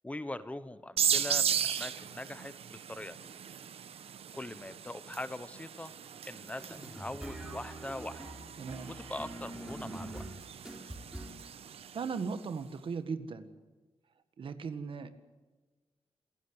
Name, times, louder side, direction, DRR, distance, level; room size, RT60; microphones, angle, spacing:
voice 1, 0.0-3.3 4.3-5.9 6.2-8.2 8.9-10.3, left 1 dB, 15° left, 13 dB, 0.9 m, -42 dB
sound 1, 1.0-12.3, right 8 dB, 85° right, 1.0 m, -37 dB
sound 2, 6.6-11.5, right 1 dB, 10° right, 4.4 m, -45 dB
voice 2, 8.6-8.9 11.9-13.5 14.4-15.1, right 5 dB, 60° right, 10 dB, 1.7 m, -37 dB
27.5 x 16.0 x 8.1 m, 1.3 s
wide cardioid pair, 140°, 10 cm